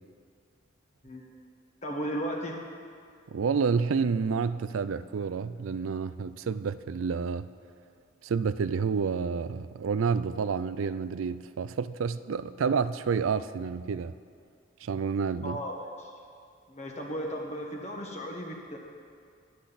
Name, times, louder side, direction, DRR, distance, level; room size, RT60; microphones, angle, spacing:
voice 1, 1.8-2.6 15.4-16.1 16.7-18.8, equal, 35° left, 1.6 m, -35 dB
voice 2, 3.3-7.5 8.2-14.1 14.8-15.6, right 5 dB, 85° right, 0.4 m, -29 dB
22.0 x 7.9 x 4.2 m
head